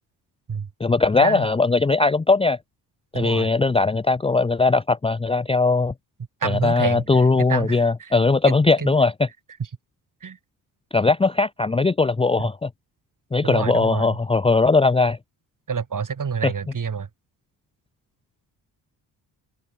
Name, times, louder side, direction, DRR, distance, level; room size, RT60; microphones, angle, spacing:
voice 1, 0.8-2.6 3.1-5.9 6.4-9.3 10.9-12.7 13.3-15.2 16.4-16.5, left 3 dB, 15° left, 0.5 m, -19 dB
voice 2, 3.1-3.5 6.4-7.0 7.5-8.1 8.5-8.9 10.2-10.4 13.4-14.2 15.7-17.1, right 6 dB, 45° right, 5.2 m, -28 dB
cardioid pair, 80°, 44 cm